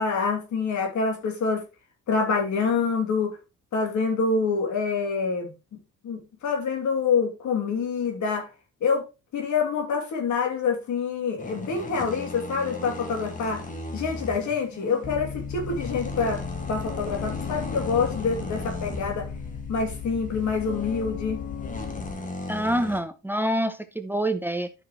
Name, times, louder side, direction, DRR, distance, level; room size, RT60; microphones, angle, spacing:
voice 1, 0.0-1.6 2.1-3.4 3.7-5.5 6.0-8.5 8.8-9.0 9.3-13.6 13.9-16.4 16.7-19.3 19.7-21.4, left 5 dB, 75° left, 2.9 m, -26 dB
sound 1, 11.4-23.0, left 2 dB, 25° left, 1.9 m, -38 dB
sound 2, 15.0-22.1, left 5 dB, 50° left, 1.6 m, -35 dB
voice 2, 22.5-24.7, right 1 dB, 5° right, 0.8 m, -26 dB
11.5 x 5.9 x 3.1 m
cardioid pair, 90°, 30 cm